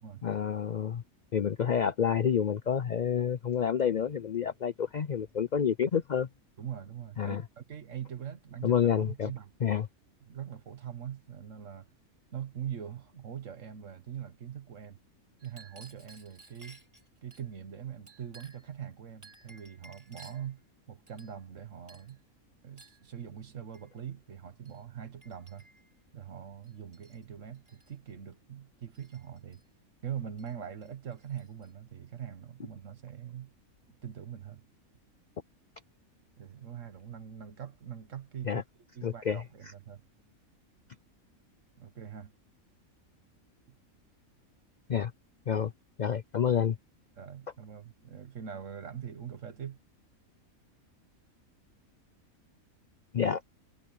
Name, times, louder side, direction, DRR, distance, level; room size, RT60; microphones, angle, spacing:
voice 1, 0.2-1.0 1.3-6.3 7.2-7.4 8.6-9.3 9.6-9.9 38.4-38.6 39.0-39.4 44.9-45.1 45.5-45.7 46.0-46.8 53.1-53.4, left 8 dB, 65° left, 0.4 m, -28 dB
voice 2, 6.6-9.5 10.2-11.9 12.3-15.0 15.4-16.8 17.2-20.6 20.9-22.2 22.6-25.7 26.1-29.6 30.0-33.5 33.9-34.6 36.4-38.6 38.9-40.0 41.7-42.3 43.7-43.8 45.6-45.7 47.2-49.8, right 9 dB, 60° right, 1.6 m, -42 dB
Chink clink, 15.4-17.5 18.1-18.7 19.2-20.5 21.1-21.6 21.9-22.2 22.8-23.0 23.7-23.9 24.7-24.8 25.2-25.9 26.6-27.2 27.5-27.9 28.9-29.6 30.4-30.5 30.8-31.7, right 2 dB, 25° right, 4.8 m, -56 dB
omnidirectional pair, 1.5 m